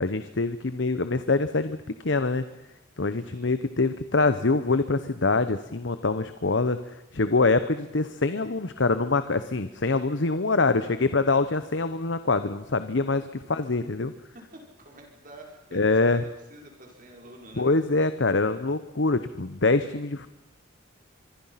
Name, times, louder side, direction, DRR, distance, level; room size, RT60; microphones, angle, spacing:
voice 1, 0.0-2.4 3.0-14.1 15.7-16.2 17.6-20.3, left 3 dB, 70° left, 11 dB, 1.0 m, -25 dB
voice 2, 3.2-3.5 10.6-11.4 13.0-13.7 14.3-17.7, right 1 dB, 45° right, 1 dB, 5.8 m, -49 dB
25.0 x 23.0 x 5.8 m, 0.96 s
head